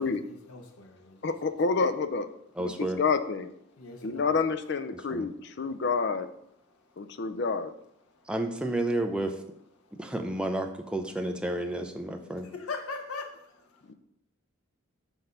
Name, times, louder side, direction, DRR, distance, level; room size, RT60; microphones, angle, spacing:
voice 1, 0.0-1.5 3.8-4.3 6.7-7.3 8.1-8.3 9.8-10.0 12.1-13.9, left 4 dB, 90° left, 4 dB, 0.8 m, -42 dB
voice 2, 1.2-2.3 2.6-3.5 4.0-6.3 7.0-7.7 13.9-14.0, left 4 dB, 50° left, 11 dB, 0.4 m, -28 dB
voice 3, 2.6-3.0 5.1-5.3 8.3-9.3 10.0-12.5, right 1 dB, 5° right, 4 dB, 0.5 m, -31 dB
6.1 x 3.9 x 5.4 m, 0.76 s
head